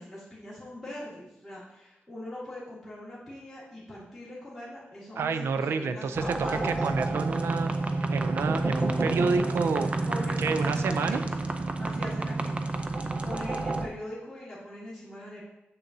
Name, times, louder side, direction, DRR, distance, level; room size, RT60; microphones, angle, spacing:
voice 1, 0.0-6.8 10.0-11.2 11.8-12.6 13.2-15.4, left 1 dB, ahead, -11 dB, 1.9 m, -41 dB
voice 2, 5.2-6.2 6.5-7.7 8.1-9.9 10.4-11.2, right 5 dB, 85° right, 9 dB, 0.4 m, -29 dB
sound 1, 6.1-13.9, right 2 dB, 30° right, 0.5 m, -29 dB
7.2 x 6.6 x 2.7 m, 0.89 s
wide cardioid pair, 135°, 4 cm